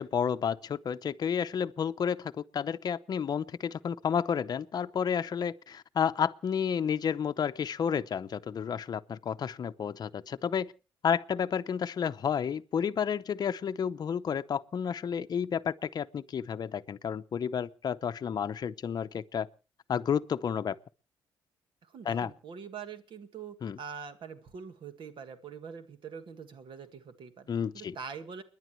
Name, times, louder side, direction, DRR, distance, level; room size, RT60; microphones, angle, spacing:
voice 1, 0.0-10.7 11.0-19.5 19.9-20.8 22.0-22.3 23.6-23.8 27.5-27.9, left 7 dB, 45° left, 0.7 m, -31 dB
voice 2, 21.8-28.4, right 6 dB, 60° right, 1.7 m, -44 dB
29.5 x 10.5 x 3.1 m
cardioid pair, 100°, 9 cm